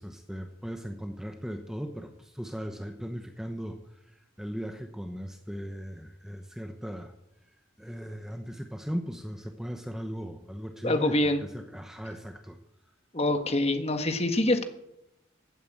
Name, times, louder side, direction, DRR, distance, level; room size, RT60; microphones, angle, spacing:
voice 1, 0.0-7.1 7.8-12.6, equal, 5° right, 6 dB, 0.9 m, -38 dB
voice 2, 10.8-11.4 13.1-14.6, left 1 dB, 35° left, 7 dB, 1.6 m, -25 dB
16.0 x 9.3 x 8.7 m, 0.85 s
head